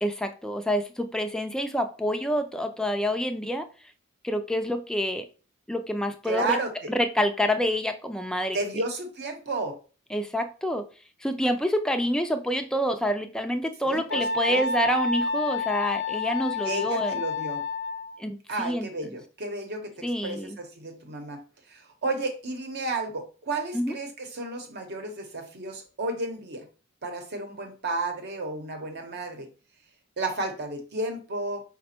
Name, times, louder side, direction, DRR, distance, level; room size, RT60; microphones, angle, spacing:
voice 1, 0.0-3.7 4.2-5.3 5.7-6.6 6.9-8.6 10.1-10.9 11.2-17.2 18.2-18.9 20.0-20.6 23.7-23.9, equal, 5° left, 6 dB, 0.3 m, -27 dB
voice 2, 6.3-6.7 8.5-9.8 13.8-14.6 16.6-17.6 18.5-21.4 21.7-26.6 27.0-29.5 30.2-31.6, right 2 dB, 55° right, 5 dB, 0.9 m, -32 dB
Wind instrument woodwind instrument, 14.1-18.2, left 3 dB, 60° left, 0.5 m, -29 dB
5.0 x 2.2 x 4.2 m, 0.37 s
head